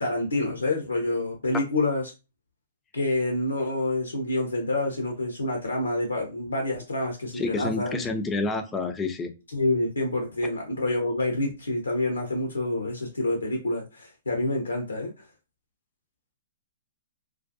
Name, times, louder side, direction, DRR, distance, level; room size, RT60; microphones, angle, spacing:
voice 1, 0.0-2.1 2.9-8.0 9.5-15.1, left 2 dB, 90° left, 0.6 m, -27 dB
voice 2, 7.3-9.3, left 3 dB, 15° left, 0.4 m, -29 dB
2.3 x 2.1 x 2.6 m
hypercardioid pair, 125°, 0 cm